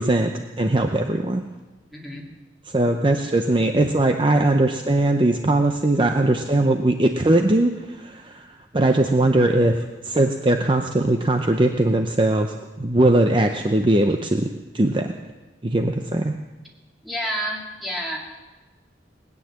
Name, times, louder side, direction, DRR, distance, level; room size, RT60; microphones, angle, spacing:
voice 1, 0.0-1.4 2.7-8.5 8.7-14.5 14.7-15.1 15.6-16.3, right 1 dB, 25° right, 5 dB, 0.7 m, -20 dB
voice 2, 1.9-2.2 17.0-18.2, equal, ahead, -4 dB, 2.9 m, -29 dB
19.5 x 9.6 x 7.4 m, 1.2 s
head